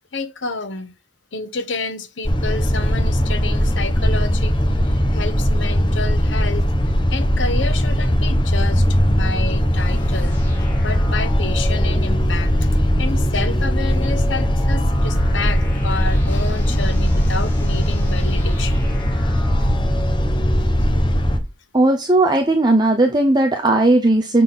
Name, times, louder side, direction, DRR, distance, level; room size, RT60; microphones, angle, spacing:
voice 1, 0.1-0.9 1.3-4.5 4.8-6.7 7.1-10.4 10.8-12.7 13.0-18.8, left 3 dB, 85° left, 1.2 m, -29 dB
sound 1, 2.2-21.4, equal, 25° left, 1.1 m, -19 dB
sound 2, 9.7-21.0, left 2 dB, 10° left, 4.9 m, -34 dB
voice 2, 21.7-24.4, right 2 dB, 25° right, 0.8 m, -16 dB
7.6 x 4.2 x 5.5 m
head